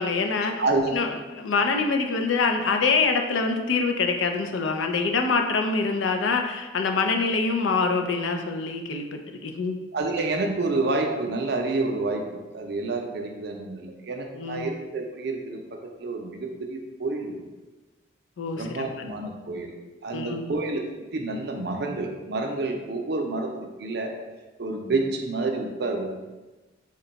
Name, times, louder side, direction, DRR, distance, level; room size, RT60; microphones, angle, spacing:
voice 1, 0.0-0.6 0.9-9.8 14.3-14.7 18.4-18.8 20.1-20.5, left 4 dB, 90° left, 5 dB, 0.4 m, -25 dB
voice 2, 0.6-0.9 9.9-12.2 12.5-15.6 16.0-17.5 18.6-19.7 20.0-20.8 21.1-24.1 24.6-26.1, right 3 dB, 60° right, 3 dB, 0.5 m, -28 dB
3.7 x 2.2 x 3.9 m, 1.2 s
head